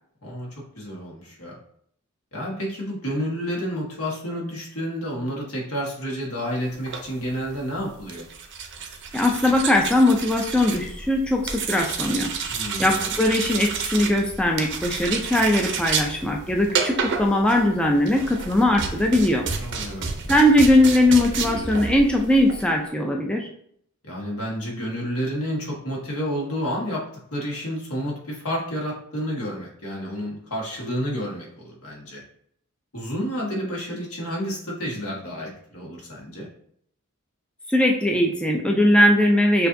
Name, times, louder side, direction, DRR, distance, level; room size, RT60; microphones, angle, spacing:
voice 1, 0.7-1.6 2.3-8.2 12.5-13.1 19.6-20.3 24.0-27.0 27.3-32.2 32.9-36.5, equal, 80° left, -3 dB, 1.5 m, -30 dB
sound 1, 6.7-22.7, right 5 dB, 55° right, 0.6 m, -30 dB
voice 2, 9.1-12.3 12.8-19.5 20.3-23.5 37.7-39.7, left 1 dB, 5° left, 1 dB, 0.3 m, -20 dB
6.5 x 2.6 x 2.6 m, 0.66 s
head